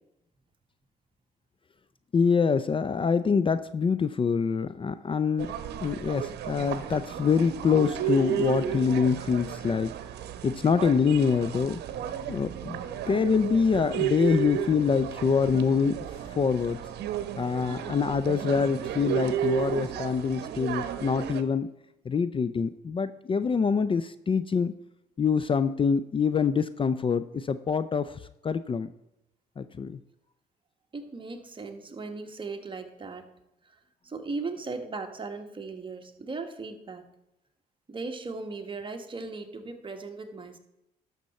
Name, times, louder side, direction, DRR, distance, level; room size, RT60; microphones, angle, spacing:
voice 1, 2.1-5.5 5.8-9.9 10.4-11.8 12.3-12.8 13.1-16.0 16.3-16.8 17.4-21.7 22.1-24.7 25.2-28.2 28.4-28.9 29.6-30.0, left 6 dB, 30° left, 13 dB, 0.5 m, -25 dB
sound 1, 5.4-21.4, right 10 dB, 80° right, 0.8 m, -33 dB
voice 2, 30.9-33.3 33.6-37.0 37.9-40.6, right 3 dB, 30° right, 5 dB, 1.4 m, -38 dB
11.5 x 6.7 x 4.3 m, 0.87 s
cardioid pair, 80°, 17 cm